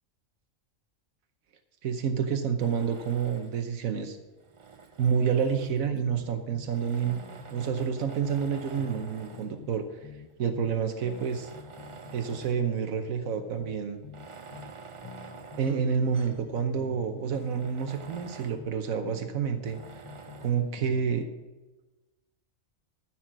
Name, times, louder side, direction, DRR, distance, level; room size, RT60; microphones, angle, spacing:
voice 1, 1.8-4.2 5.0-9.8 10.4-11.5 12.1-14.0 15.6-19.8 20.4-21.3, right 7 dB, 85° right, 7 dB, 1.3 m, -29 dB
Tools, 2.6-3.7 4.4-6.0 6.7-9.6 10.3-10.4 10.9-12.7 13.1-13.2 14.0-16.5 16.9-17.0 17.3-18.7 19.6-20.6, right 5 dB, 45° right, 0.4 m, -48 dB
sound 1, 5.3-6.8 7.0-10.8 11.0-14.8 15.0-18.8 19.0-21.1, left 5 dB, 25° left, 0.7 m, -47 dB
14.0 x 6.0 x 6.1 m, 1.1 s
omnidirectional pair, 1.4 m